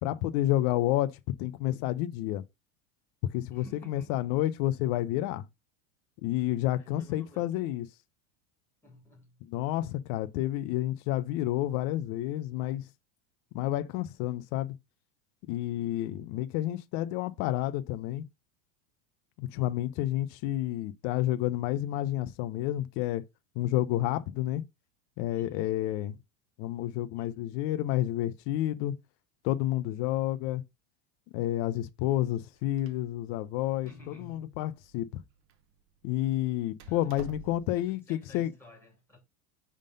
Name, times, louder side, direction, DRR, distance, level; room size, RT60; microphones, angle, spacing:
voice 1, 0.0-2.4 3.3-5.5 6.2-7.9 9.5-12.8 13.5-14.7 15.5-18.2 19.4-23.2 23.6-24.6 25.2-26.2 26.6-28.9 29.4-30.6 31.3-35.2 36.0-38.5, left 14 dB, 45° left, 0.5 m, -30 dB
voice 2, 3.5-4.3 6.7-7.4 8.8-9.4 19.5-19.7 25.3-25.8 27.2-27.5 33.8-34.6 36.8-37.1 37.7-39.2, left 1 dB, 5° left, 2.7 m, -54 dB
Door, 32.3-37.9, right 7 dB, 35° right, 0.8 m, -54 dB
5.3 x 3.7 x 5.2 m
supercardioid pair, 150°, 40 cm